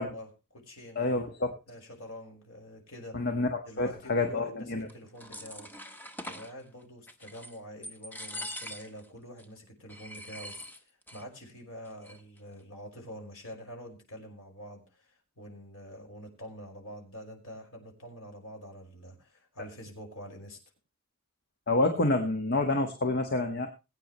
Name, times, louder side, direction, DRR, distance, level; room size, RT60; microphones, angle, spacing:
voice 1, 0.0-1.1 1.7-3.2 3.6-5.7 6.2-10.5 11.1-20.6, equal, 80° left, 1 dB, 5.3 m, -46 dB
voice 2, 0.9-1.5 3.1-4.9 21.7-23.7, left 2 dB, 50° left, 5 dB, 1.6 m, -28 dB
sound 1, 4.9-6.5 7.1-7.6 7.8-9.1 9.4-9.5 9.9-11.2 11.5-11.6 11.9-12.4, equal, 10° left, 1.4 m, -43 dB
21.5 x 9.1 x 3.1 m, 0.29 s
head